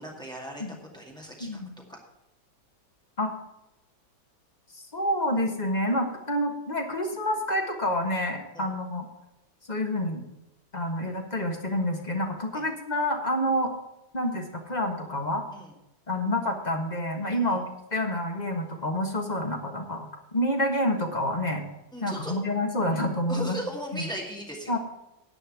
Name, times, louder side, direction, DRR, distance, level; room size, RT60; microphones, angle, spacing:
voice 1, 0.0-1.6 1.9-2.0 8.5-8.7 12.5-12.6 15.5-15.7 17.3-17.6 21.9-22.4 23.3-24.8, right 1 dB, ahead, -1 dB, 2.1 m, -38 dB
voice 2, 1.4-1.7 3.2-3.3 4.9-9.1 9.7-10.2 10.7-13.7 14.1-15.4 16.1-17.6 17.9-21.6 22.0-23.6 23.9-24.1 24.7-24.8, left 1 dB, 25° left, 2 dB, 1.4 m, -28 dB
10.5 x 5.5 x 8.0 m, 0.91 s
omnidirectional pair, 2.0 m